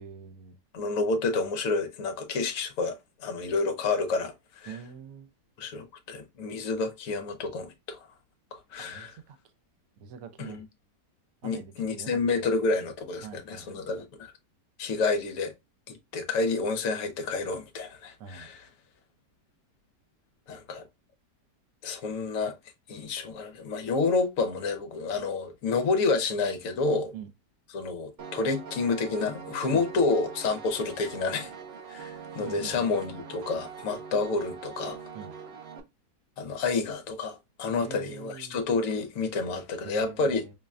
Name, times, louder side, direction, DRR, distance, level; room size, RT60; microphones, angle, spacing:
voice 1, 0.0-0.6 4.7-5.3 8.8-9.4 10.0-10.6 11.4-12.5 13.2-13.9 18.2-18.5 27.1-27.3 29.7-29.9 32.4-32.9 35.1-35.3 37.8-38.6 39.8-40.5, right 7 dB, 65° right, 0.9 m, -43 dB
voice 2, 0.7-4.8 5.6-8.0 8.5-9.1 10.4-10.6 11.4-14.1 14.8-15.5 15.9-18.7 20.5-20.9 21.8-22.5 22.9-27.1 27.7-31.5 31.9-35.0 36.4-40.4, left 4 dB, 60° left, 1.0 m, -29 dB
Piano, 28.2-35.8, right 5 dB, 85° right, 0.5 m, -42 dB
5.4 x 2.1 x 2.4 m
omnidirectional pair, 1.8 m